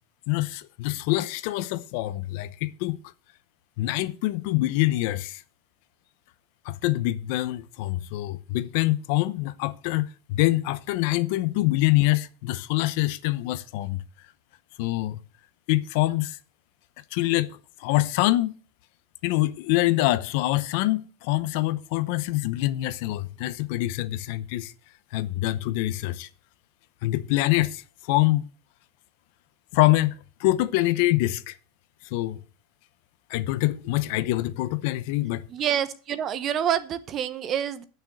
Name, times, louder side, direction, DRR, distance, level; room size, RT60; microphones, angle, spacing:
voice 1, 0.3-3.0 3.8-5.4 6.6-14.0 14.8-15.2 15.7-16.4 17.1-18.5 19.2-24.7 25.1-26.3 27.0-28.5 29.7-31.6 32.1-32.4 33.3-35.4, left 17 dB, 65° left, 0.8 m, -25 dB
voice 2, 35.5-37.8, right 9 dB, 35° right, 0.9 m, -27 dB
8.8 x 6.6 x 8.0 m
supercardioid pair, 145°, 0 cm